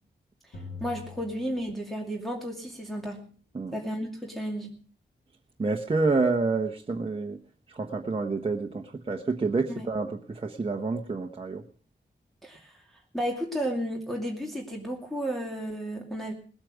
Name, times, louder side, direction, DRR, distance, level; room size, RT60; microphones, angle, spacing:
sound 1, 0.5-2.3, left 5 dB, 85° left, 4.3 m, -44 dB
voice 1, 0.5-3.2 3.7-4.8 9.7-9.9 12.4-12.8 13.1-16.3, equal, ahead, -1 dB, 2.5 m, -33 dB
voice 2, 5.6-7.4 7.7-11.6, right 3 dB, 30° right, 3 dB, 1.2 m, -28 dB
20.0 x 8.7 x 6.3 m, 0.43 s
wide cardioid pair, 150°, 19 cm